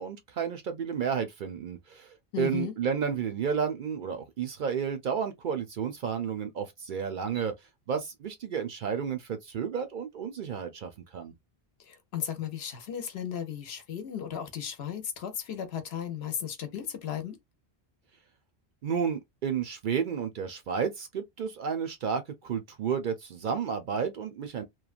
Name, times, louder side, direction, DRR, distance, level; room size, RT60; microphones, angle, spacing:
voice 1, 0.0-7.5 7.9-11.3 18.8-24.6, right 7 dB, 60° right, 0.6 m, -32 dB
voice 2, 2.3-2.7 11.8-17.4, left 9 dB, 75° left, 0.9 m, -35 dB
3.0 x 2.2 x 2.4 m
omnidirectional pair, 1.1 m